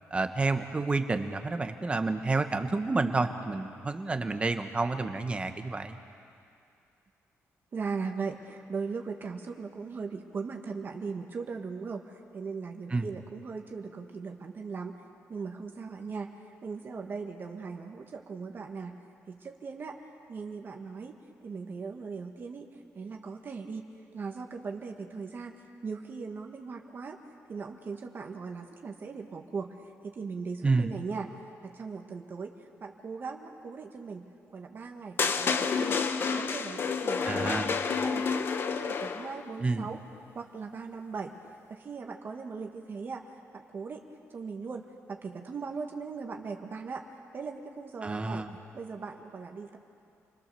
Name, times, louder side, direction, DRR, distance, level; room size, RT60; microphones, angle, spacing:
voice 1, 0.1-6.0 12.9-13.1 30.6-30.9 37.2-37.7 39.6-39.9 48.0-48.5, right 3 dB, 20° right, 7 dB, 1.4 m, -29 dB
voice 2, 7.7-15.0 15.3-19.0 19.3-21.1 21.4-23.8 24.1-25.6 25.8-27.2 27.5-29.8 30.0-36.0 36.3-38.5 38.8-40.0 40.3-41.3 41.7-44.0 44.3-48.4 48.7-49.8, right 5 dB, 40° right, 3 dB, 1.7 m, -39 dB
sound 1, 35.2-39.4, left 5 dB, 45° left, 1.1 m, -29 dB
29.5 x 21.5 x 7.0 m, 2.5 s
cardioid pair, 125°, 5 cm